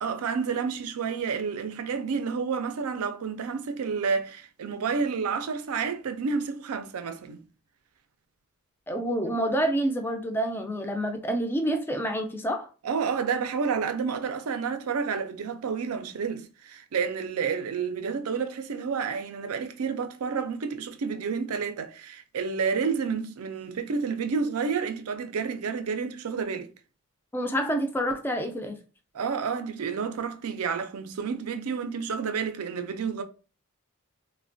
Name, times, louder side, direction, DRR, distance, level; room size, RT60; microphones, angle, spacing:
voice 1, 0.0-7.4 12.8-26.7 29.1-33.2, right 5 dB, 85° right, 0.4 m, -30 dB
voice 2, 8.9-12.7 27.3-28.8, right 1 dB, 10° left, 0.3 m, -28 dB
3.1 x 2.1 x 2.5 m
head